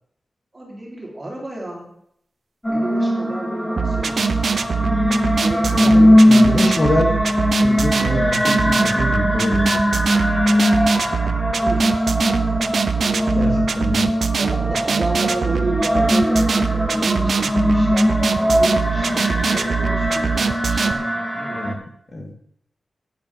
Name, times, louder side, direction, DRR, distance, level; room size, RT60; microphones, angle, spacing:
voice 1, 0.5-1.9 2.7-4.2 5.4-6.9 11.6-12.2 13.0-13.4 14.4-21.7, right 1 dB, 25° right, -1 dB, 3.0 m, -31 dB
sound 1, 2.6-21.7, equal, 10° left, 1.6 m, -20 dB
sound 2, 3.8-20.9, right 6 dB, 70° right, 0.7 m, -23 dB
voice 2, 5.7-7.1 7.6-10.2 11.0-11.4 13.3-14.1 21.5-21.8 22.1-22.3, left 1 dB, 40° left, 2 dB, 2.2 m, -25 dB
11.0 x 8.9 x 4.7 m, 0.69 s
wide cardioid pair, 130°, 0 cm